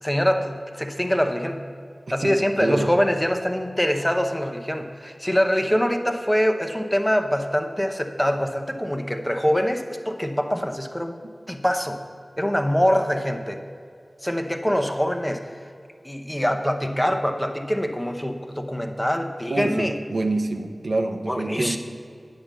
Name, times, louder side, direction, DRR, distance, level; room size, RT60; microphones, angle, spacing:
voice 1, 0.0-1.6 2.1-11.2 11.5-12.0 12.4-13.6 14.2-15.5 16.0-19.9 21.3-21.8, equal, 10° left, 5 dB, 0.8 m, -24 dB
voice 2, 2.6-2.9 11.2-11.3 19.5-21.8, right 2 dB, 80° right, 5 dB, 0.6 m, -26 dB
8.6 x 5.3 x 7.3 m, 2.3 s
cardioid pair, 40°, 0 cm